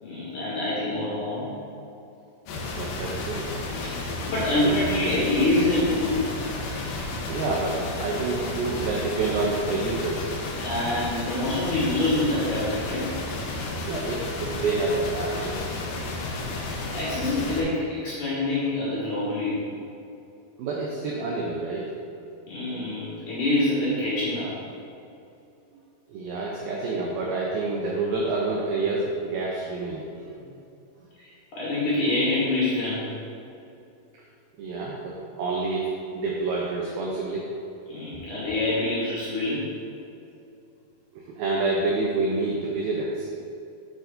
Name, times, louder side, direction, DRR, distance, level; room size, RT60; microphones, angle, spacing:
voice 1, 0.0-1.5 3.9-6.2 10.6-13.0 16.9-19.6 22.5-24.5 31.2-33.1 37.9-39.7, left 2 dB, 60° left, -9 dB, 2.3 m, -26 dB
sound 1, 2.5-17.6, left 2 dB, 85° left, 1.9 m, -32 dB
voice 2, 2.8-3.5 7.3-10.3 13.9-15.7 20.6-21.9 26.1-30.3 34.6-35.9 36.1-37.5 38.3-38.4 41.1-43.3, right 3 dB, 90° right, -3 dB, 2.1 m, -28 dB
8.0 x 7.1 x 2.6 m, 2.7 s
omnidirectional pair, 5.2 m